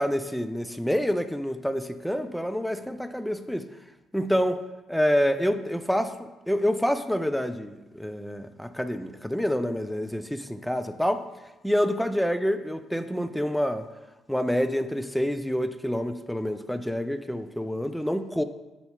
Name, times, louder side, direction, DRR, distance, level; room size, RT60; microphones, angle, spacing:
voice 1, 0.0-3.6 4.1-4.6 4.9-11.2 11.6-13.9 14.3-18.4, equal, ahead, 10 dB, 0.4 m, -27 dB
6.7 x 3.9 x 3.6 m, 1.1 s
figure-of-eight pair, 45°, 0 cm